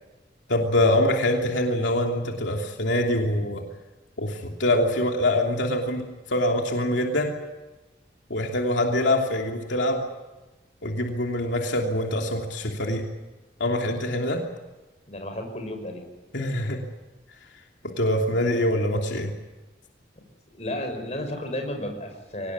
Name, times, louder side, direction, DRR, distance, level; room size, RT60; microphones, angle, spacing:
voice 1, 0.5-3.6 4.2-6.0 6.3-7.3 8.3-10.1 10.8-13.0 13.6-14.4 16.3-16.8 17.8-19.3, left 1 dB, 85° left, 1 dB, 3.0 m, -24 dB
voice 2, 15.1-16.0 18.3-18.6 20.5-22.5, left 1 dB, 35° left, 4 dB, 5.8 m, -33 dB
24.5 x 19.0 x 9.7 m, 1.1 s
head